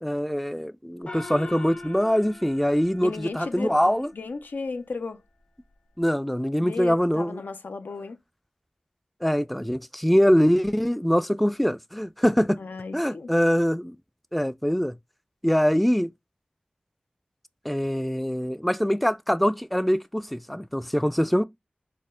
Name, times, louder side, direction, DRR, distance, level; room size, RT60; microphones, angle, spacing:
voice 1, 0.0-4.1 6.0-7.4 9.2-12.6 12.9-14.0 14.3-15.0 15.4-16.1 17.6-21.4, equal, ahead, 0.3 m, -23 dB
Gong, 1.1-4.0, left 2 dB, 45° left, 0.9 m, -41 dB
voice 2, 3.0-5.2 6.6-8.2 12.6-13.3, left 4 dB, 85° left, 0.5 m, -35 dB
4.2 x 2.0 x 3.7 m
wide cardioid pair, 45°, 3 cm